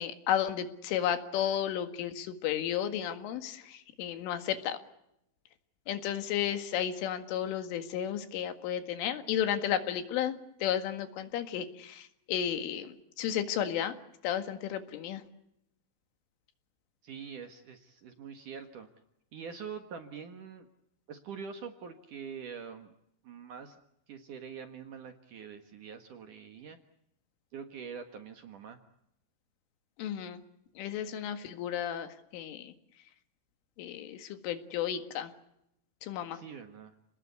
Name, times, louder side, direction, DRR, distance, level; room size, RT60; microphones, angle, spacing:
voice 1, 0.0-4.8 5.9-13.9 14.2-15.2 30.0-30.4 30.8-32.7 33.8-35.3 36.0-36.4, left 10 dB, 90° left, 8 dB, 4.4 m, -33 dB
voice 2, 17.0-18.9 19.3-20.7 21.1-22.9 23.2-23.8 24.1-26.8 27.5-28.8 36.3-36.9, right 6 dB, 60° right, 6 dB, 2.4 m, -44 dB
30.0 x 19.5 x 8.3 m, 0.79 s
omnidirectional pair, 5.5 m